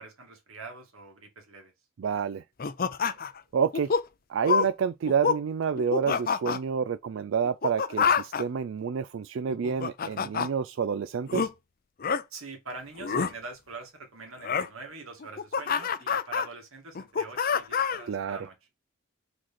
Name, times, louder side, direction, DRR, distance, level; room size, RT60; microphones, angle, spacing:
voice 1, 0.0-1.7 12.3-18.6, right 3 dB, 80° right, 2.4 m, -44 dB
voice 2, 2.0-2.4 3.5-3.9 4.3-11.5 18.1-18.4, right 6 dB, 60° right, 0.3 m, -28 dB
sound 1, 2.6-3.4 3.7-4.0 4.4-4.7 5.1-5.4 5.8-6.6 7.4-8.4 9.5-10.5 11.3-11.5 12.0-12.2 13.0-13.3 14.4-14.7 15.2-16.5 16.9-18.0, left 6 dB, 45° left, 0.5 m, -27 dB
5.1 x 4.2 x 5.8 m
head